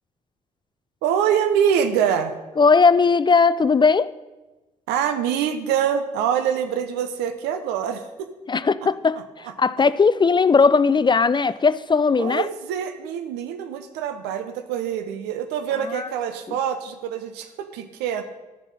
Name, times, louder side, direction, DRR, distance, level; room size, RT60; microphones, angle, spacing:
voice 1, 1.0-2.4 4.9-8.3 12.2-18.2, right 8 dB, 75° right, 0.9 m, -25 dB
voice 2, 2.6-4.1 8.5-9.2 9.6-12.5 15.9-16.1 16.5-16.6, left 5 dB, 25° left, 0.4 m, -18 dB
12.5 x 7.1 x 5.6 m
hypercardioid pair, 40°, 18 cm